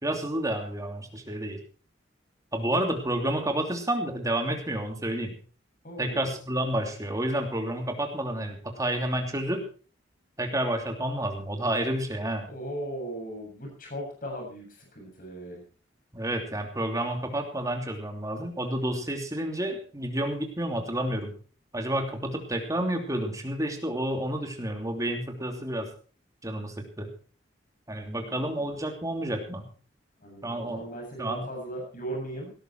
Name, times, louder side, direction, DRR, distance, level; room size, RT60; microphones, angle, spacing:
voice 1, 0.0-1.6 2.5-5.3 6.0-9.6 10.4-12.5 16.1-21.3 21.7-25.9 26.4-27.1 27.9-29.6 30.4-30.8 31.2-31.4, right 1 dB, 20° right, 4 dB, 3.0 m, -30 dB
voice 2, 5.8-6.3 12.5-14.6 15.0-15.6 28.0-28.7 30.2-32.5, right 1 dB, 50° left, 1 dB, 7.4 m, -38 dB
17.5 x 13.0 x 4.5 m, 0.38 s
head